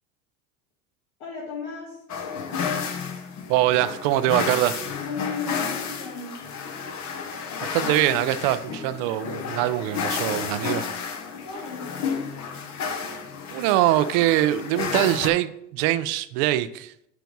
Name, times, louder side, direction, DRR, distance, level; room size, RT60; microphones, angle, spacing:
voice 1, 1.2-2.0 5.0-6.4 11.3-11.8, left 5 dB, 70° left, 1.9 m, -35 dB
sound 1, 2.1-15.3, left 6 dB, 45° left, 1.1 m, -31 dB
voice 2, 3.5-4.8 7.6-10.9 13.5-16.9, right 14 dB, 60° right, 0.6 m, -23 dB
9.3 x 3.4 x 4.0 m
hypercardioid pair, 80°, 38 cm